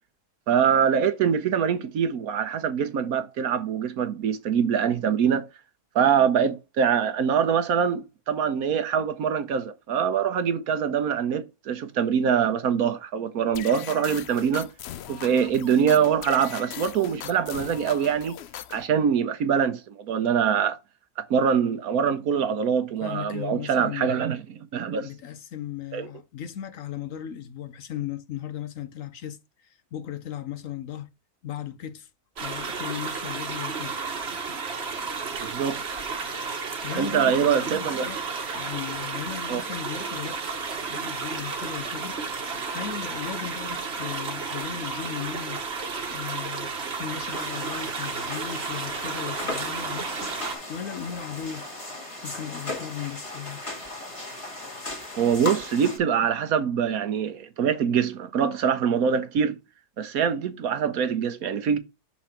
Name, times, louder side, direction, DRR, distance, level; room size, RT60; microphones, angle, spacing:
voice 1, 0.5-5.5 5.9-14.7 15.1-18.4 18.7-20.8 21.2-24.4 24.7-25.1 25.9-26.1 35.4-35.8 37.0-38.1 39.5-39.6 55.2-59.6 60.0-61.8, right 7 dB, 70° right, 1.2 m, -24 dB
sound 1, 13.5-18.9, left 11 dB, 80° left, 0.5 m, -40 dB
voice 2, 23.0-24.2 25.0-31.1 31.4-32.1 32.4-33.9 36.8-38.2 38.5-42.2 42.7-45.6 46.1-50.3 50.7-51.6 52.2-53.6, left 9 dB, 65° left, 1.0 m, -36 dB
sound 2, 32.4-50.6, right 4 dB, 45° right, 1.3 m, -32 dB
sound 3, 47.3-56.0, left 2 dB, 20° left, 1.8 m, -37 dB
6.1 x 4.3 x 4.3 m
omnidirectional pair, 1.7 m